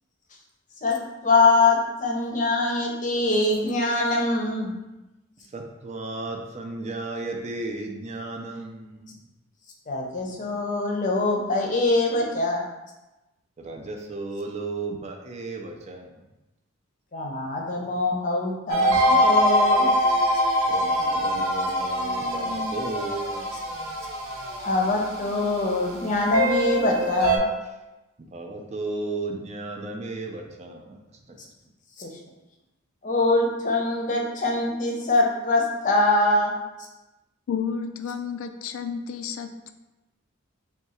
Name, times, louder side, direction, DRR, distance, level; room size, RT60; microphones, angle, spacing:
voice 1, 1.2-4.7 9.9-12.6 17.1-19.9 24.6-27.5 32.0-32.1 33.0-36.5, left 2 dB, 40° left, 0 dB, 0.6 m, -23 dB
voice 2, 5.5-9.1 13.6-16.1 20.7-23.4 28.3-30.8, right 2 dB, 35° right, 2 dB, 0.4 m, -34 dB
sound 1, 18.7-27.4, equal, 90° right, 0.6 m, -24 dB
voice 3, 37.5-39.7, left 6 dB, 85° left, 8 dB, 0.3 m, -31 dB
3.6 x 2.3 x 4.2 m, 1.0 s
head